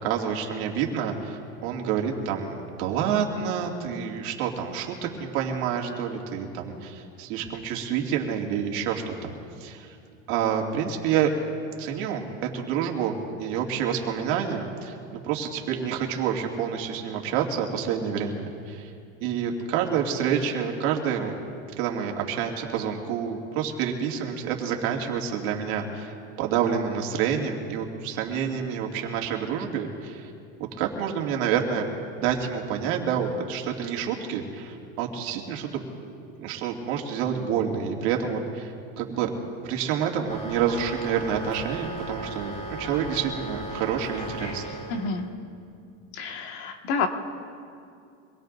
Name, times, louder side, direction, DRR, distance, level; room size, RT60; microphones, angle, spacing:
voice 1, 0.0-9.3 9.6-9.9 10.3-11.3 11.8-18.9 19.2-21.3 21.8-30.3 30.8-31.9 32.2-35.8 36.4-39.3 39.6-44.6, right 8 dB, 65° right, 1 dB, 2.4 m, -28 dB
sound 1, 40.3-45.3, right 1 dB, 20° left, 3.0 m, -37 dB
voice 2, 44.9-45.3 46.1-47.1, left 5 dB, 65° left, 3 dB, 1.9 m, -29 dB
25.5 x 21.0 x 2.6 m, 2.5 s
supercardioid pair, 130°, 35 cm